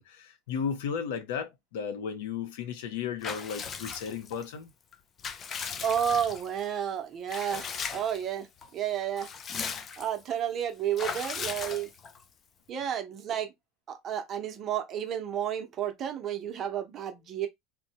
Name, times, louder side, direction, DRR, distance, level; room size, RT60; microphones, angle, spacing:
voice 1, 0.0-4.7, left 7 dB, 75° left, 0.7 m, -34 dB
Water / Bathtub (filling or washing) / Liquid, 3.2-4.5 4.9-6.6 7.3-8.2 8.6-8.7 9.0-10.2 11.0-12.2, left 6 dB, 25° left, 0.3 m, -37 dB
voice 2, 5.8-9.3 10.0-11.9 12.7-13.5 13.9-17.5, right 9 dB, 30° right, 0.7 m, -31 dB
2.8 x 2.1 x 2.9 m
supercardioid pair, 145°, 0 cm